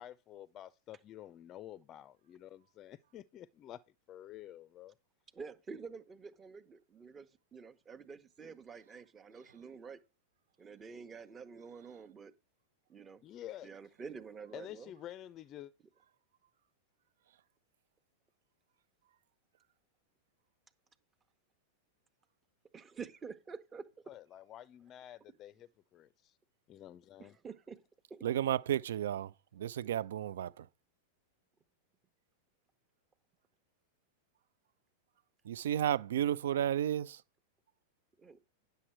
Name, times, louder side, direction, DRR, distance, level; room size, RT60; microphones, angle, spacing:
voice 1, 0.0-3.8 4.1-4.9 13.2-13.7 14.5-15.7 24.1-26.4 26.7-27.4, left 12 dB, 35° left, 0.4 m, -50 dB
voice 2, 5.3-10.0 10.6-12.3 12.9-13.2 13.6-14.9 22.7-23.8 27.2-27.8 28.1-28.2 38.2-38.4, right 5 dB, 25° right, 1.0 m, -48 dB
voice 3, 28.2-30.7 35.5-37.2, right 11 dB, 70° right, 0.4 m, -33 dB
9.8 x 6.7 x 4.4 m
hypercardioid pair, 95°, 0 cm